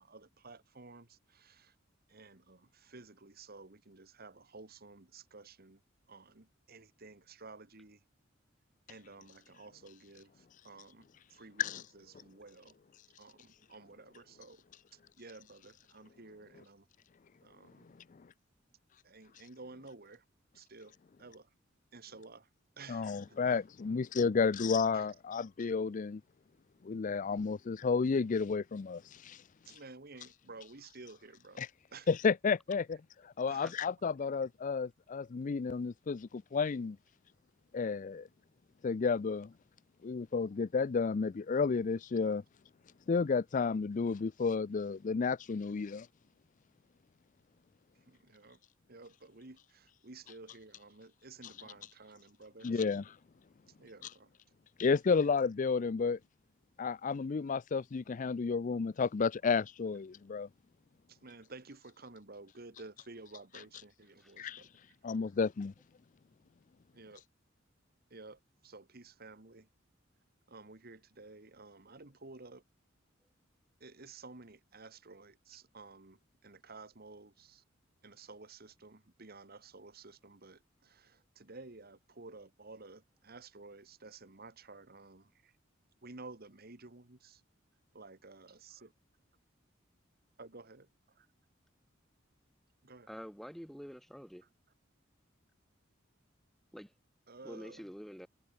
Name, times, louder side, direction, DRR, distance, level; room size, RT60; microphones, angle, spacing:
voice 1, 0.0-1.8 2.1-5.8 6.1-8.0 8.9-12.8 13.2-14.7 14.9-16.9 17.4-18.0 19.0-20.2 20.5-21.5 21.9-22.5 22.8-23.4 24.9-25.1 25.6-25.7 29.7-31.6 31.9-32.1 33.4-33.7 47.9-48.6 48.9-53.0 53.7-54.3 61.1-64.7 65.1-65.2 66.9-67.2 68.1-69.7 70.5-72.6 73.8-77.6 78.0-85.5 86.0-87.4 87.9-88.9 90.4-91.3 92.8-93.1 94.4-94.5 97.3-97.9, right 3 dB, 50° right, 2.0 m, -53 dB
voice 2, 22.9-26.2 26.8-29.4 31.6-31.7 32.1-33.0 33.2-37.0 37.7-38.3 38.8-39.5 40.0-42.4 43.1-46.1 52.6-53.0 54.8-56.2 56.8-60.5 64.4-64.6 65.0-65.7, left 5 dB, 40° left, 0.4 m, -32 dB
voice 3, 93.1-94.4 96.7-96.9 97.4-98.3, equal, ahead, 4.7 m, -47 dB
head